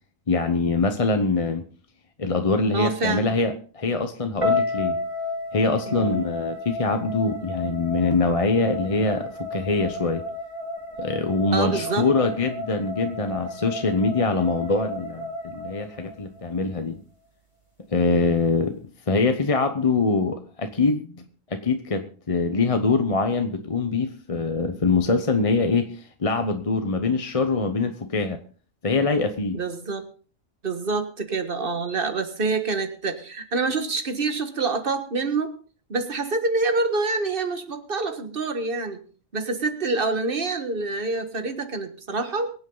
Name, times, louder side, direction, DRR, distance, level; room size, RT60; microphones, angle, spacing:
voice 1, 0.3-1.6 2.2-5.0 5.5-10.2 11.0-17.0 17.9-21.2 21.5-28.4 28.8-29.6, left 3 dB, 30° left, 7 dB, 0.8 m, -24 dB
voice 2, 2.7-3.4 5.9-6.2 11.5-12.1 29.5-30.0 30.6-35.5 35.9-39.0 39.3-42.5, right 3 dB, 40° right, 8 dB, 1.7 m, -26 dB
sound 1, 4.4-16.5, left 2 dB, 20° right, 6.5 m, -32 dB
24.0 x 8.1 x 3.9 m, 0.41 s
omnidirectional pair, 1.4 m